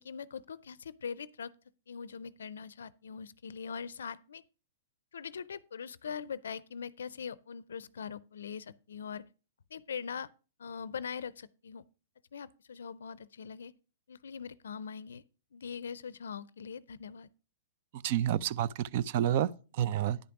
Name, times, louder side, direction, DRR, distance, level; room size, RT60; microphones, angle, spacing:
voice 1, 0.0-1.5 1.9-4.4 5.1-9.2 9.7-10.3 10.6-11.8 12.3-13.7 14.1-15.2 15.5-17.3, left 6 dB, 80° left, 0.4 m, -42 dB
voice 2, 17.9-20.2, right 11 dB, 55° right, 0.5 m, -29 dB
10.5 x 5.1 x 5.9 m
hypercardioid pair, 120°, 0 cm